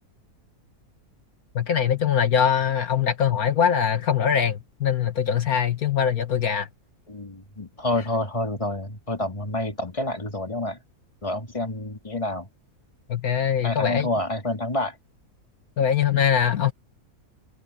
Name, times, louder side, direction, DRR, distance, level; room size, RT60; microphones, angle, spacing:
voice 1, 1.6-6.7 13.1-14.1 15.8-16.7, left 8 dB, 75° left, 1.8 m, -22 dB
voice 2, 7.1-10.8 11.2-12.5 13.6-15.0, left 1 dB, 20° left, 2.7 m, -28 dB
omnidirectional pair, 1.6 m